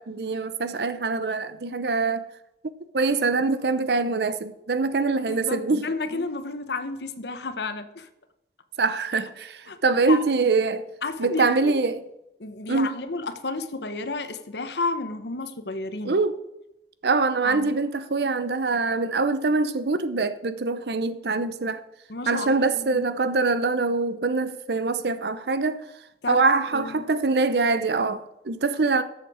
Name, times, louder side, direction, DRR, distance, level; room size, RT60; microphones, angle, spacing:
voice 1, 0.0-2.2 2.9-5.8 8.8-10.8 11.2-12.0 12.7-12.9 16.0-16.3 17.0-21.8 22.3-25.8 26.3-29.0, right 3 dB, 65° right, 0.7 m, -24 dB
voice 2, 5.3-8.1 9.7-9.8 10.1-10.2 11.0-11.7 12.4-16.2 17.4-17.8 22.1-23.0 26.2-26.4 26.7-27.1, left 3 dB, 75° left, 1.0 m, -31 dB
14.0 x 7.3 x 4.9 m
head